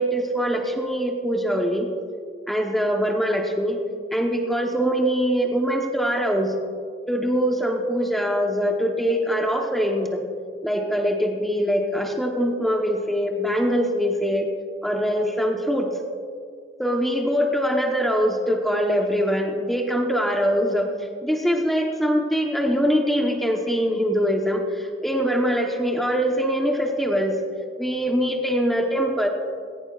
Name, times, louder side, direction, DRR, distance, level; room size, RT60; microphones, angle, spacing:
voice 1, 0.0-1.9 2.5-3.8 4.1-6.5 7.1-10.2 10.6-14.5 14.8-15.9 16.8-20.9 21.2-27.4 27.8-29.3, equal, ahead, 2 dB, 1.0 m, -23 dB
17.5 x 15.5 x 2.4 m, 2.2 s
head